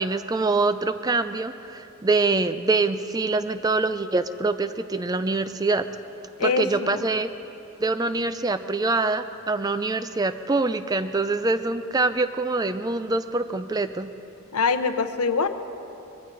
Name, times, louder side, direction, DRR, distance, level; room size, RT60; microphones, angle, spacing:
voice 1, 0.0-5.8 6.4-7.3 7.8-14.1, right 3 dB, 15° right, 11 dB, 0.3 m, -25 dB
voice 2, 6.4-7.0 14.5-15.5, left 4 dB, 85° left, 10 dB, 0.8 m, -24 dB
22.0 x 15.5 x 4.0 m, 2.9 s
head